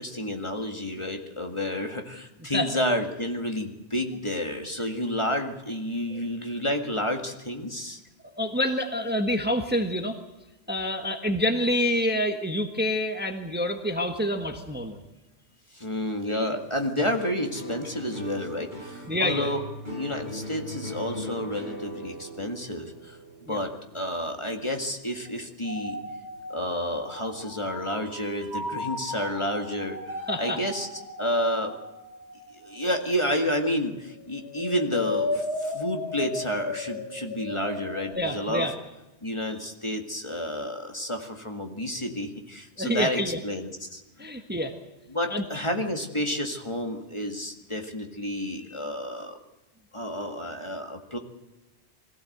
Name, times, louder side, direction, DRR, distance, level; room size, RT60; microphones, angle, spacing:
voice 1, 0.0-8.0 15.7-19.6 19.9-23.2 23.5-26.0 26.5-30.9 31.2-31.8 32.5-38.7 39.2-44.3 45.1-49.4 49.9-51.2, equal, 25° left, 4 dB, 1.9 m, -30 dB
voice 2, 8.2-10.2 10.7-15.0 19.1-19.5 23.5-23.6 30.3-30.6 38.1-38.7 42.8-43.4 44.2-44.7 45.3-45.4, left 1 dB, 10° right, 5 dB, 1.3 m, -27 dB
sound 1, 17.0-25.4 25.7-26.4, equal, 40° left, 5.6 m, -40 dB
sound 2, 25.6-33.9 34.2-38.1, left 2 dB, 80° left, 3.7 m, -35 dB
21.5 x 16.0 x 7.9 m, 1.0 s
omnidirectional pair, 1.2 m